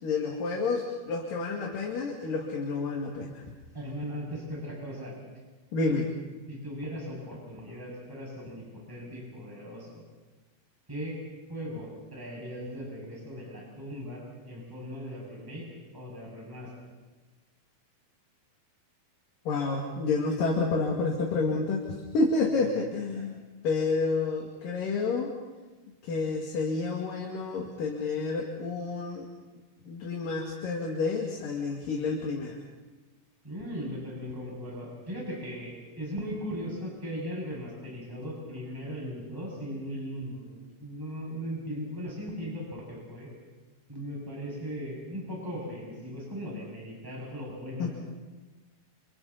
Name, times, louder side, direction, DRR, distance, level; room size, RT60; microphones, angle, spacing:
voice 1, 0.0-3.4 5.7-6.1 19.5-21.8 22.1-23.4 23.6-25.3 26.0-29.3 29.9-32.6 47.8-47.9, left 3 dB, 65° left, -1 dB, 3.8 m, -29 dB
voice 2, 3.7-5.1 6.5-10.0 10.9-11.2 11.5-15.7 15.9-16.7 23.1-23.2 33.4-43.3 43.9-47.9, equal, 5° right, -4 dB, 6.6 m, -38 dB
30.0 x 28.0 x 4.2 m, 1.2 s
omnidirectional pair, 4.3 m